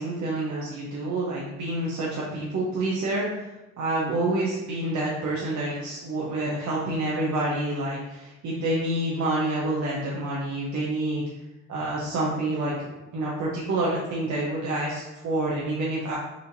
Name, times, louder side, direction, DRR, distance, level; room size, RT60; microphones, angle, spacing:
voice 1, 0.0-11.2 11.7-12.7 13.1-16.1, right 2 dB, 65° right, -5 dB, 0.8 m, -28 dB
4.3 x 2.6 x 2.6 m, 0.98 s
cardioid pair, 90°, 30 cm